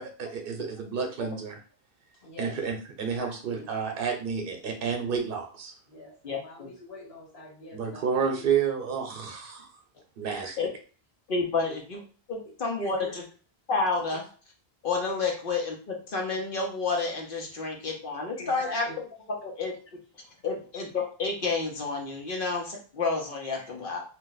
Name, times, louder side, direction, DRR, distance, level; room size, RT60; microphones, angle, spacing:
voice 1, 0.0-1.6 2.4-5.7 7.7-9.7 10.2-10.6, right 6 dB, 65° right, 3 dB, 0.9 m, -30 dB
voice 2, 2.2-2.6 3.2-3.7 5.9-8.4 10.4-10.6 11.5-11.8 12.8-13.1 14.1-14.2 18.4-19.0 22.3-22.4, left 1 dB, 80° left, -2 dB, 1.4 m, -45 dB
voice 3, 6.2-6.7 10.6-10.7 11.3-12.0 12.3-13.2 13.7-14.2 14.8-19.7 20.4-24.0, left 4 dB, 60° left, 0 dB, 0.9 m, -30 dB
2.6 x 2.1 x 3.9 m, 0.39 s
omnidirectional pair, 1.0 m